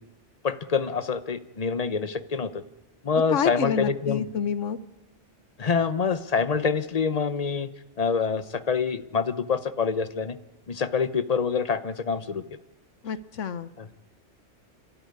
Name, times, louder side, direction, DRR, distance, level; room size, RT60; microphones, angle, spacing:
voice 1, 0.4-2.6 3.0-4.2 5.6-7.7 8.0-10.4 10.7-12.4 13.8-14.1, left 5 dB, 35° left, 12 dB, 0.9 m, -26 dB
voice 2, 3.3-4.8 13.0-13.7, left 7 dB, 90° left, 13 dB, 1.3 m, -28 dB
27.5 x 13.0 x 9.6 m, 1.1 s
omnidirectional pair, 1.2 m